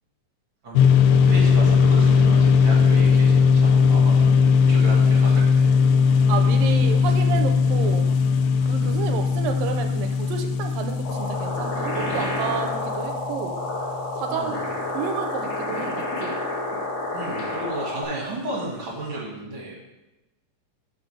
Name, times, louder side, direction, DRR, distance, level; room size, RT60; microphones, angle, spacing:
voice 1, 0.6-4.2 4.7-5.7 14.3-14.6 17.1-19.7, right 1 dB, 45° right, -4 dB, 2.0 m, -34 dB
sound 1, 0.8-14.3, left 5 dB, 80° left, 2.2 m, -19 dB
voice 2, 6.1-8.1 8.7-13.6 14.2-16.3, right 8 dB, 80° right, 5 dB, 2.3 m, -31 dB
sound 2, 11.0-18.0, left 2 dB, 60° left, 3.1 m, -29 dB
11.5 x 6.3 x 3.3 m, 1.1 s
omnidirectional pair, 4.1 m